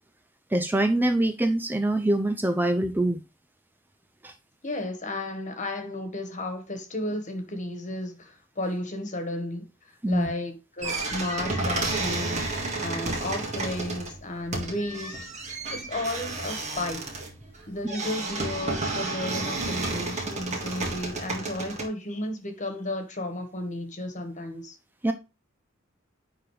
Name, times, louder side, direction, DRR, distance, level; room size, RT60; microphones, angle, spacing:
voice 1, 0.5-3.2 4.2-4.3 10.0-10.3 25.0-25.1, right 1 dB, 10° right, 0.4 m, -24 dB
voice 2, 4.6-9.7 10.1-17.2 17.7-24.8, left 1 dB, 40° left, 1.5 m, -33 dB
sound 1, 10.8-21.9, right 3 dB, 35° right, 1.8 m, -31 dB
10.0 x 3.8 x 3.2 m
head